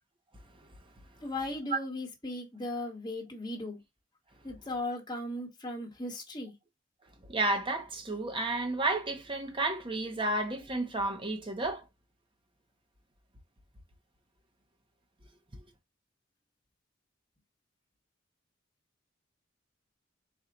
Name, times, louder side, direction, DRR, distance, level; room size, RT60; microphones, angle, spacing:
voice 1, 1.2-3.8 4.4-6.5, left 2 dB, 20° left, 1.3 m, -37 dB
voice 2, 7.3-11.8, right 2 dB, 25° right, 0.8 m, -31 dB
4.4 x 2.4 x 3.8 m
head